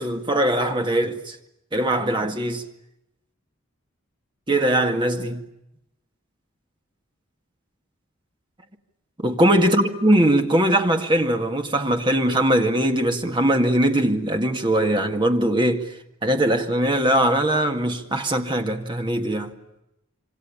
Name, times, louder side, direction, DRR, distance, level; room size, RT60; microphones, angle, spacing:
voice 1, 0.0-1.4 1.7-2.6 4.5-5.4 9.2-15.9 16.2-19.5, right 1 dB, 25° right, 2.0 m, -21 dB
27.0 x 25.5 x 8.7 m
head